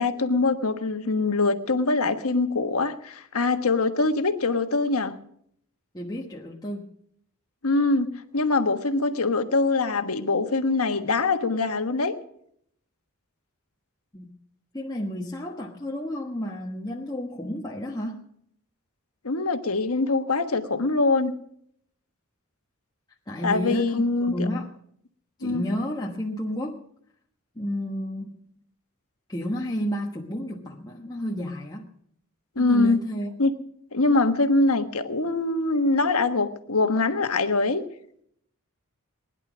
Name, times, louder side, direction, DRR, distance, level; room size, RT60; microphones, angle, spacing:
voice 1, 0.0-5.1 7.6-12.1 19.2-21.3 23.4-24.3 25.4-25.6 32.5-33.0 33.4-33.5 33.9-37.8, left 3 dB, 80° left, 8 dB, 1.4 m, -23 dB
voice 2, 5.9-6.8 14.1-14.3 14.7-18.3 23.3-24.7 25.4-26.8 27.5-28.4 29.3-31.9 32.5-33.3, equal, 20° left, -1 dB, 1.2 m, -31 dB
20.5 x 11.0 x 6.1 m, 0.69 s
head